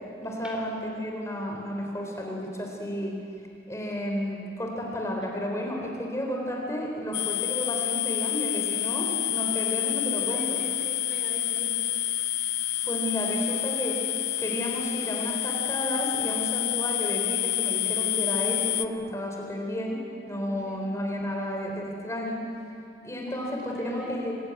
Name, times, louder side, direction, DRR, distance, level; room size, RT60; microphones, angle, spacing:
voice 1, 0.2-3.2 3.7-10.6 12.8-14.0 14.4-20.0 20.3-22.4 23.0-24.3, equal, 15° left, 0 dB, 3.9 m, -32 dB
sound 1, 7.1-18.9, left 13 dB, 70° left, 0.8 m, -28 dB
voice 2, 10.3-11.8 20.7-20.8 23.3-24.2, equal, 5° right, -1 dB, 3.9 m, -41 dB
27.5 x 20.0 x 9.7 m, 2.6 s
head